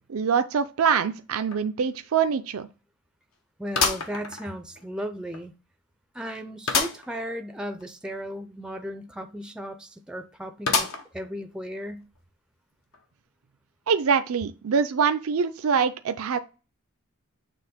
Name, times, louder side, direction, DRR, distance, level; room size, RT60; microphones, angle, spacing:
voice 1, 0.1-2.7 13.9-16.4, right 6 dB, 85° right, 0.5 m, -24 dB
sound 1, 1.5-1.6 2.0-2.1 3.7-4.8 5.3-5.4 6.7-7.1 7.5-7.6 7.8-7.9 10.7-11.3 11.9-12.0 12.9-13.0, left 5 dB, 75° left, 1.1 m, -27 dB
voice 2, 3.6-5.5 6.1-10.9 11.1-12.1, equal, 5° right, 0.4 m, -35 dB
6.9 x 2.9 x 5.1 m
head